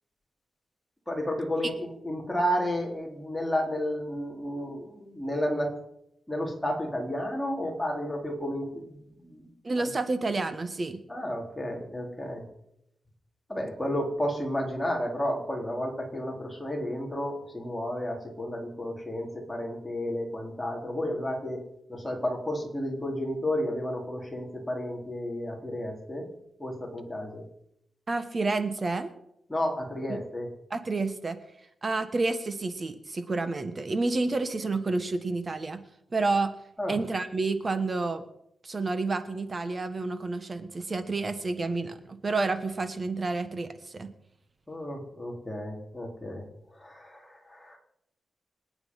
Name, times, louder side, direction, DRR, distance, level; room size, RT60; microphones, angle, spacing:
voice 1, 1.1-5.7 6.3-9.5 9.8-9.9 11.1-12.4 13.5-21.6 21.9-26.3 26.6-27.4 29.5-30.5 36.8-37.0 44.7-46.4 46.7-47.8, equal, 5° left, -1 dB, 4.0 m, -32 dB
voice 2, 9.6-11.0 28.1-29.1 30.1-30.2 30.7-31.4 31.8-35.8 36.1-36.5 36.9-38.2 38.6-44.1, right 3 dB, 30° right, 10 dB, 1.3 m, -29 dB
26.5 x 8.9 x 5.6 m, 0.76 s
wide cardioid pair, 135°, 0 cm